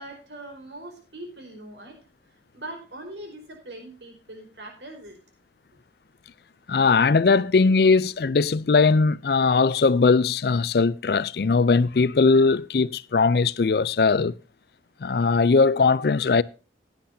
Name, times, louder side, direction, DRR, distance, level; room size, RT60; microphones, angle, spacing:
voice 1, 0.0-2.0 2.5-5.2, right 1 dB, 80° right, 4.9 m, -41 dB
voice 2, 6.7-14.4 15.0-16.4, left 4 dB, 60° left, 0.4 m, -20 dB
16.0 x 10.5 x 2.7 m
head